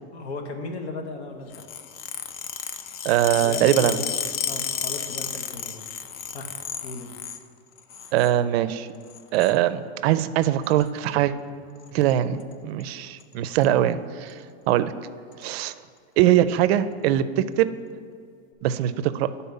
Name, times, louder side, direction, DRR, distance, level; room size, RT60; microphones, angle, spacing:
voice 1, 0.1-1.6 3.3-4.0 4.5-5.8 6.3-6.5 6.8-7.1, left 3 dB, 85° left, 4 dB, 1.2 m, -36 dB
sound 1, 1.5-7.4 7.8-8.3 9.1-9.6 10.6-10.9 11.8-12.1 12.4-12.5 12.8-12.9 13.2-13.7 14.3-14.4 15.3-15.4, left 8 dB, 45° left, 0.5 m, -32 dB
voice 2, 3.0-4.0 8.1-8.9 9.3-11.3 11.9-14.4 14.7-14.9 15.4-15.7 16.2-17.7 18.6-19.3, right 12 dB, 65° right, 14 dB, 0.4 m, -22 dB
9.2 x 4.1 x 5.4 m, 2.2 s
supercardioid pair, 145°, 33 cm